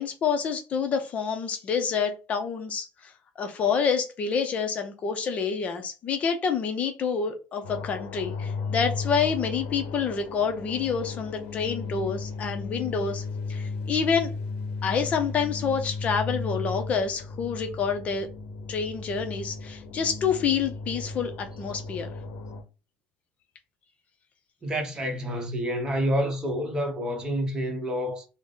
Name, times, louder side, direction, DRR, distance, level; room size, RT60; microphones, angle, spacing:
voice 1, 0.0-13.2 13.5-14.3 14.8-18.3 18.7-22.1, left 6 dB, 35° left, 0.6 m, -28 dB
sound 1, 7.6-22.6, left 4 dB, 75° left, 0.7 m, -35 dB
voice 2, 24.6-28.2, equal, 20° right, 0.9 m, -28 dB
3.5 x 2.1 x 3.9 m
cardioid pair, 140°, 4 cm